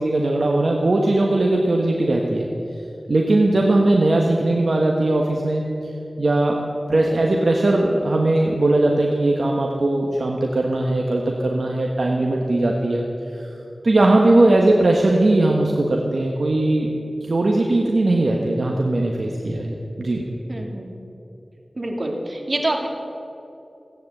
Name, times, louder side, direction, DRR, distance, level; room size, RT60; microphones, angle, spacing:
voice 1, 0.0-2.5 3.1-5.6 6.2-6.6 6.9-13.0 13.3-13.4 13.8-16.9 17.2-20.3, right 2 dB, 70° right, 0 dB, 1.3 m, -19 dB
voice 2, 20.5-20.9 21.8-22.9, right 1 dB, 55° right, 2 dB, 2.4 m, -26 dB
16.0 x 9.4 x 7.8 m, 2.9 s
cardioid pair, 45°, 0 cm